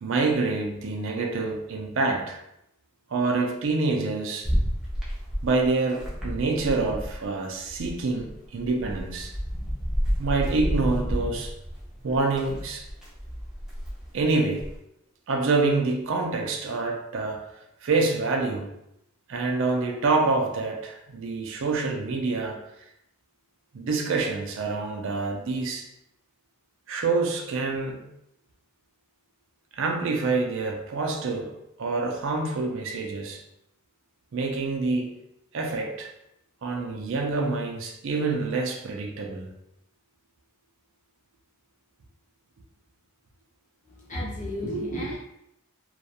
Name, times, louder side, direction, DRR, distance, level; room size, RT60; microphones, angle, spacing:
voice 1, 0.0-2.4 3.1-4.5 5.4-9.3 10.2-11.5 12.0-12.9 14.1-14.7 15.3-17.5 17.8-18.7 19.3-22.6 23.7-25.9 26.9-28.0 29.7-33.4 34.3-35.1 35.5-36.1 36.6-39.5, right 3 dB, 60° right, 2 dB, 0.4 m, -26 dB
sound 1, 4.4-7.3 7.5-14.8, equal, ahead, 0.5 m, -31 dB
voice 2, 43.8-45.2, equal, 35° left, -4 dB, 0.7 m, -32 dB
2.4 x 2.2 x 2.7 m, 0.82 s
head